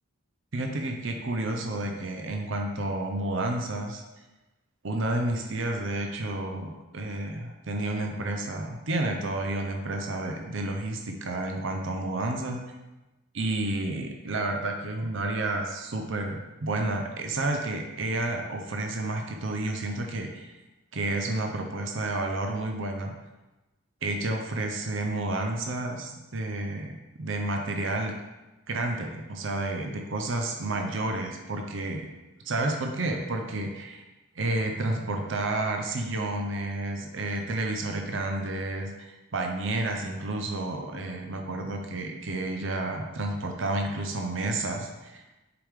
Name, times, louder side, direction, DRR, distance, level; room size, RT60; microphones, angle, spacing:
voice 1, 0.5-4.0 4.8-12.6 13.3-20.5 20.9-23.1 24.0-28.1 28.7-32.1 32.4-34.0 34.3-45.2, right 2 dB, 65° right, 3 dB, 0.7 m, -30 dB
6.9 x 4.9 x 3.5 m, 1.1 s
head